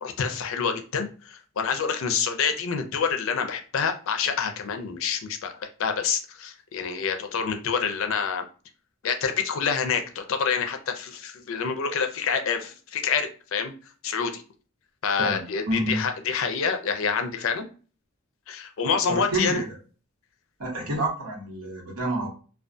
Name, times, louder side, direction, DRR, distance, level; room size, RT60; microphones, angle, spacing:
voice 1, 0.0-8.4 9.0-13.7 14.0-14.4 15.0-17.7 18.5-19.6, left 6 dB, 65° left, 6 dB, 0.4 m, -27 dB
voice 2, 15.2-16.0 19.1-19.6 20.6-22.3, right 1 dB, 85° right, -2 dB, 1.0 m, -28 dB
2.2 x 2.2 x 2.5 m, 0.37 s
head